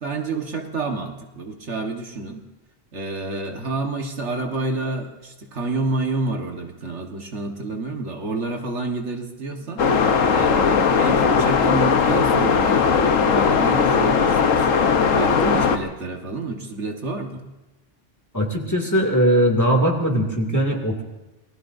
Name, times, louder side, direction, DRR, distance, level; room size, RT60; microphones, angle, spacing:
voice 1, 0.0-2.4 2.9-17.4, right 3 dB, 65° right, 3 dB, 1.8 m, -29 dB
sound 1, 9.8-15.8, left 5 dB, 90° left, 1.4 m, -18 dB
voice 2, 18.3-21.0, equal, 15° left, 1 dB, 2.4 m, -20 dB
27.5 x 19.5 x 2.7 m, 1.1 s
omnidirectional pair, 1.3 m